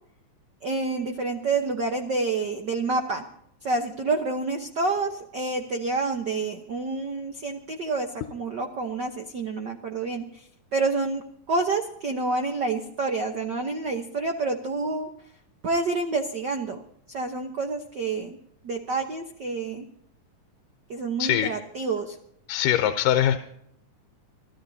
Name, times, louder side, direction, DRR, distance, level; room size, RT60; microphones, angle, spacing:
voice 1, 0.6-3.2 3.6-10.2 10.7-11.2 11.5-15.1 15.6-16.8 17.1-18.4 18.6-19.9 20.9-22.1, right 3 dB, 85° right, 4 dB, 0.9 m, -28 dB
voice 2, 21.2-21.5 22.5-23.4, left 11 dB, 85° left, 7 dB, 2.4 m, -22 dB
25.5 x 15.0 x 2.8 m, 0.71 s
omnidirectional pair, 3.7 m